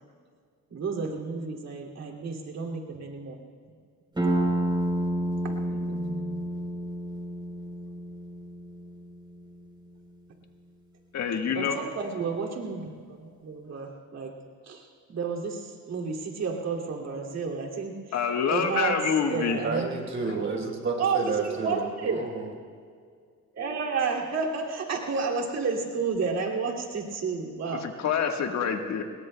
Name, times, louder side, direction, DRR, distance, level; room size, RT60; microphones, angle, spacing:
voice 1, 0.7-3.4 4.2-4.6 5.4-6.5 11.4-14.3 14.6-18.2 18.5-19.0 19.3-19.9 21.0-22.2 23.5-27.9, right 5 dB, 60° right, 0 dB, 2.5 m, -31 dB
sound 1, 4.2-9.6, right 1 dB, 15° right, 3.6 m, -30 dB
voice 2, 11.1-11.8 18.1-19.6 27.8-29.0, left 6 dB, 65° left, 4 dB, 1.5 m, -26 dB
voice 3, 19.6-22.5, right 4 dB, 45° right, -1 dB, 4.1 m, -31 dB
25.5 x 21.0 x 2.2 m, 2.1 s
cardioid pair, 90°, 30 cm